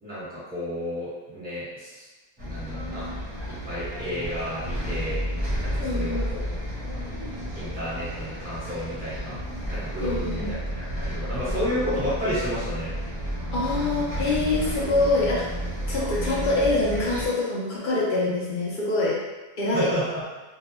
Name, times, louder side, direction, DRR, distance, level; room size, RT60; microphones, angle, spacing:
voice 1, 0.0-2.0 2.4-3.1 3.6-5.2 5.6-6.2 7.5-9.4 9.7-10.6 11.0-12.9 19.7-20.2, equal, 5° right, -11 dB, 1.1 m, -31 dB
Bus, 2.4-17.3, equal, 25° right, 0.6 m, -31 dB
voice 2, 5.8-6.3 10.0-10.5 13.5-15.5 15.9-19.2 19.6-19.9, left 2 dB, 65° left, -5 dB, 0.4 m, -25 dB
2.3 x 2.2 x 2.9 m, 1.2 s
omnidirectional pair, 1.5 m